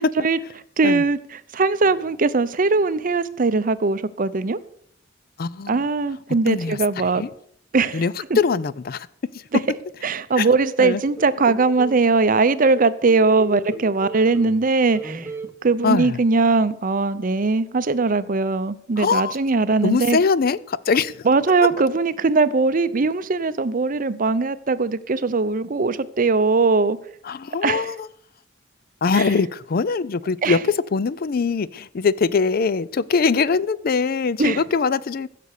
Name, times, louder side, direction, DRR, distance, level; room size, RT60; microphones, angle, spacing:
voice 1, 0.8-4.6 5.7-7.2 7.7-8.0 8.3-8.4 10.0-15.3 15.6-20.2 21.3-27.0 27.6-27.8 29.1-29.2 30.4-30.6 34.4-34.6, right 3 dB, 45° right, 0.6 m, -20 dB
voice 2, 5.4-5.8 6.5-7.3 7.9-9.1 9.3-9.4 10.4-10.5 10.8-11.0 15.8-16.2 19.0-19.4 19.8-21.3 27.2-28.1 29.0-35.3, left 5 dB, 50° left, 0.4 m, -22 dB
sound 1, 11.2-12.0 12.5-14.7 14.9-15.5, right 2 dB, 15° right, 1.0 m, -35 dB
15.0 x 6.8 x 6.5 m
head